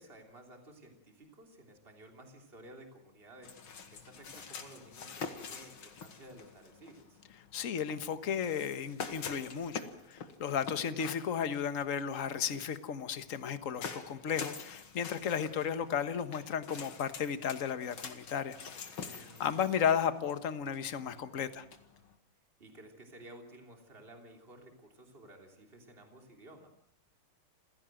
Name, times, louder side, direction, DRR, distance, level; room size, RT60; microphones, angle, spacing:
voice 1, 0.0-7.2 10.5-11.0 19.1-19.6 22.6-26.7, right 1 dB, 25° right, 3 dB, 3.6 m, -54 dB
sound 1, 3.4-22.2, left 5 dB, 70° left, 2.7 m, -46 dB
voice 2, 7.5-18.6 19.1-21.6, left 8 dB, 40° left, 10 dB, 1.5 m, -34 dB
28.5 x 16.5 x 7.8 m, 0.76 s
omnidirectional pair, 2.4 m